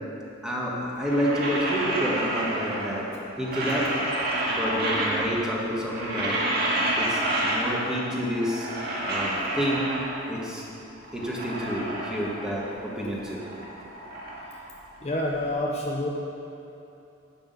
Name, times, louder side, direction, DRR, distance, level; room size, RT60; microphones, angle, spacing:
voice 1, 0.4-3.1 3.4-4.1 4.5-6.4 7.0-8.7 9.1-10.0 10.3-10.6 11.1-13.4, equal, 5° right, -4 dB, 1.8 m, -29 dB
sound 1, 0.9-3.0 3.3-5.5 5.8-8.0 8.3-10.4 10.9-12.9 13.1-15.3, right 1 dB, 50° right, 2.2 m, -29 dB
voice 2, 15.0-16.1, left 1 dB, 30° left, -1 dB, 0.8 m, -27 dB
11.5 x 6.3 x 8.1 m, 2.8 s
head